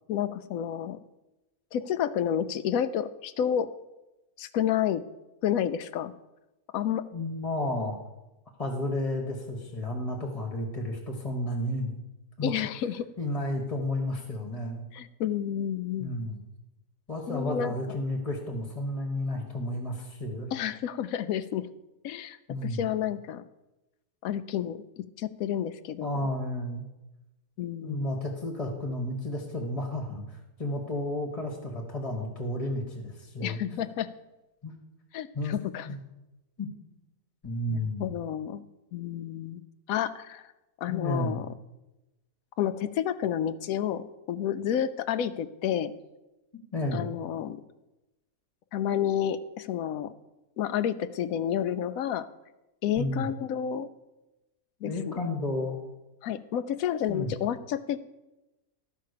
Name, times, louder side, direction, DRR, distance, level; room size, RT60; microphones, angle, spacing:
voice 1, 0.1-1.0 1.7-3.7 4.4-5.0 5.4-6.1 6.7-7.1 12.4-13.1 14.9-16.2 17.3-17.7 20.5-21.7 22.0-23.4 24.2-26.2 27.6-28.2 33.4-34.1 35.1-35.9 37.7-38.6 38.9-39.6 39.9-40.5 40.8-41.5 42.6-45.9 46.9-47.6 48.7-50.1 50.6-52.3 52.8-53.9 54.8-55.2 56.2-58.0, left 9 dB, 70° left, 12 dB, 1.0 m, -30 dB
voice 2, 7.1-8.0 8.6-11.9 12.4-12.5 13.2-14.8 16.0-16.4 17.1-20.5 22.5-22.8 26.0-26.8 27.8-33.6 34.6-34.7 35.3-35.5 35.9-36.0 36.6-36.7 37.4-38.1 40.9-41.4 46.7-47.1 53.0-53.3 54.8-55.8 57.1-57.3, left 1 dB, 25° left, 2 dB, 1.4 m, -32 dB
12.5 x 5.6 x 6.6 m, 1.0 s
omnidirectional pair, 1.6 m